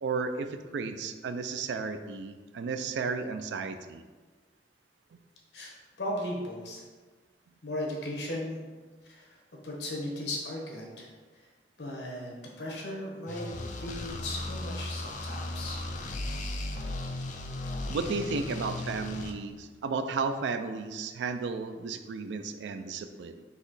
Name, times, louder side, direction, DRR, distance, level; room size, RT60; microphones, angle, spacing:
voice 1, 0.0-4.0 17.9-23.4, right 4 dB, 80° right, 9 dB, 0.3 m, -33 dB
voice 2, 5.5-6.8 7.6-8.6 9.0-9.4 9.6-11.5 11.8-12.3 12.6-13.5 13.8-15.8, left 1 dB, 75° left, -1 dB, 1.0 m, -37 dB
sound 1, 13.3-19.3, left 2 dB, 45° left, 0.4 m, -36 dB
4.1 x 2.9 x 3.9 m, 1.4 s
head